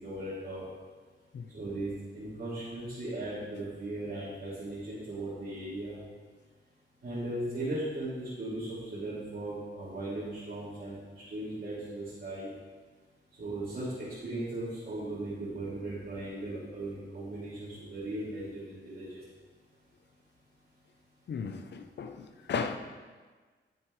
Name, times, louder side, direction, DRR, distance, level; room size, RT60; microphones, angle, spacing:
voice 1, 0.0-0.7 1.5-6.0 7.0-11.0 11.3-12.5 13.4-19.2, right 1 dB, 50° right, -12 dB, 3.2 m, -37 dB
voice 2, 21.3-22.8, left 5 dB, 60° left, 6 dB, 0.7 m, -35 dB
13.5 x 7.3 x 3.3 m, 1.4 s
wide cardioid pair, 140°, 20 cm